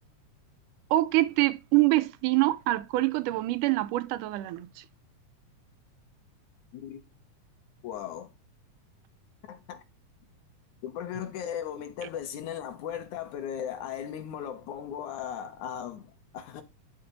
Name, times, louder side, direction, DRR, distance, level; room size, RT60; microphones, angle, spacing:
voice 1, 0.9-4.8, right 18 dB, 85° right, 2.2 m, -25 dB
voice 2, 6.7-7.0 7.8-8.3 9.5-9.8 10.8-16.6, left 9 dB, 75° left, 2.6 m, -37 dB
11.0 x 5.1 x 3.9 m
omnidirectional pair, 3.6 m